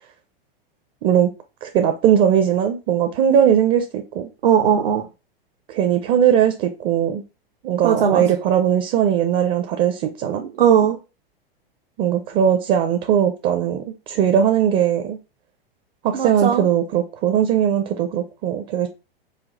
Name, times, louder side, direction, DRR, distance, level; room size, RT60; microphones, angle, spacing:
voice 1, 1.6-4.3 5.7-7.2 7.6-10.4 12.0-15.2 16.0-18.9, right 9 dB, 35° right, 0.6 m, -19 dB
voice 2, 4.4-5.1 7.8-8.2 10.3-11.0 16.1-16.7, right 8 dB, 70° right, 0.7 m, -18 dB
5.1 x 2.3 x 3.8 m
hypercardioid pair, 100°, 29 cm